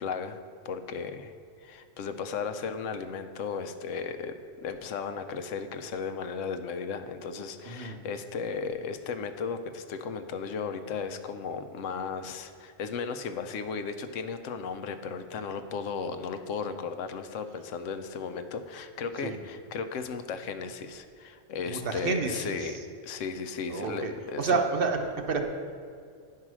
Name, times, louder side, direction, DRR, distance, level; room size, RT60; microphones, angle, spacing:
voice 1, 0.0-1.3 1.6-22.8 23.0-24.6, left 5 dB, 85° left, 8 dB, 1.0 m, -35 dB
voice 2, 7.6-8.0 19.2-19.4 21.7-22.8 23.7-24.1 24.4-25.4, right 4 dB, 55° right, 4 dB, 0.8 m, -29 dB
9.9 x 4.8 x 6.1 m, 2.4 s
omnidirectional pair, 1.3 m